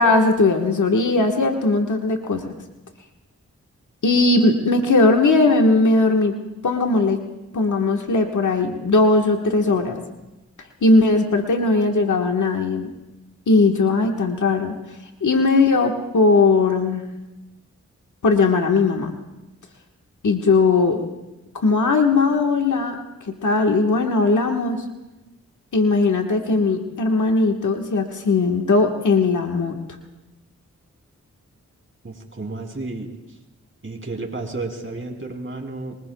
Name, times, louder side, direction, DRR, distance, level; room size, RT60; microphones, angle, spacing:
voice 1, 0.0-2.5 4.0-6.3 6.6-7.2 7.5-10.0 10.8-12.9 13.5-14.8 15.2-17.0 18.2-19.2 20.2-21.0 21.5-23.0 23.4-24.8 25.7-29.8, left 3 dB, 70° left, 3 dB, 1.5 m, -18 dB
voice 2, 32.0-33.4 33.8-36.0, right 3 dB, 40° right, 1 dB, 3.2 m, -32 dB
24.0 x 20.5 x 2.3 m, 1.0 s
cardioid pair, 45°, 31 cm